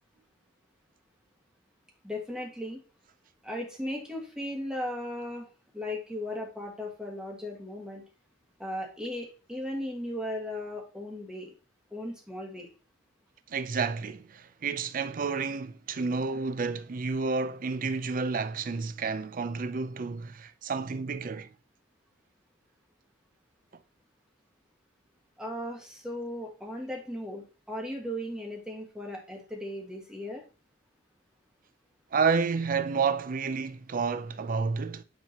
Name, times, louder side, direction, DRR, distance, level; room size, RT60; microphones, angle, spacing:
voice 1, 2.0-2.8 3.4-5.5 5.7-8.0 8.6-11.5 11.9-12.7 25.4-30.4, left 1 dB, 5° right, 1.7 m, -36 dB
voice 2, 13.5-21.5 32.1-35.0, right 5 dB, 50° right, 0.5 m, -30 dB
9.5 x 3.7 x 2.9 m
head